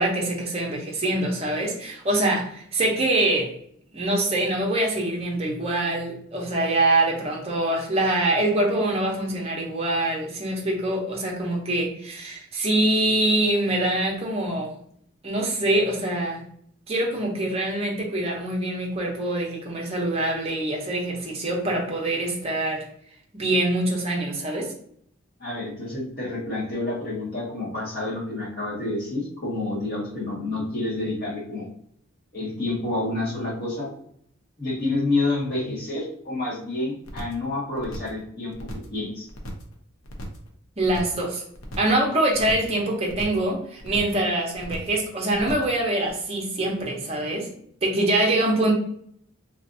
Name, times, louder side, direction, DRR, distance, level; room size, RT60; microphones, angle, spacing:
voice 1, 0.0-3.5 3.9-14.7 15.2-16.4 16.9-22.9 23.3-24.7 40.8-41.4 41.8-47.5 47.8-48.7, right 1 dB, 30° right, -1 dB, 0.7 m, -24 dB
voice 2, 25.4-31.7 32.3-33.9 34.6-38.5 38.9-39.3, left 2 dB, 45° left, -5 dB, 1.5 m, -28 dB
sound 1, 37.0-37.5 37.8-38.2 38.5-39.0 39.3-39.7 40.0-40.5 40.8-41.2 41.5-42.0 42.3-42.8 43.1-43.5 43.8-44.2 44.5-45.0 45.3-45.8 46.1-46.2, equal, 85° left, 0.7 m, -38 dB
3.3 x 2.5 x 2.6 m, 0.66 s
head